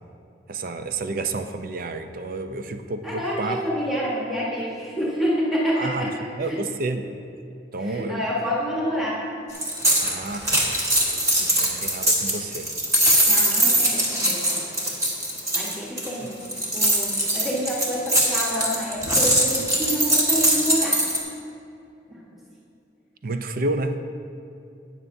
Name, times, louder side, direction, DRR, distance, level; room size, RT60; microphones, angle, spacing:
voice 1, 0.5-3.6 5.7-6.1 6.3-7.0 7.7-8.3 10.0-10.7 11.6-12.7 15.7-15.8 23.2-24.0, right 2 dB, 50° right, 8 dB, 0.5 m, -30 dB
voice 2, 3.0-6.1 6.4-6.6 7.8-9.2 11.4-11.5 13.3-14.7 15.5-16.4 16.7-21.0 22.1-22.2, equal, ahead, -7 dB, 1.3 m, -28 dB
sound 1, 9.5-21.2, right 1 dB, 20° right, 1.4 m, -21 dB
13.0 x 9.4 x 2.7 m, 2.6 s
head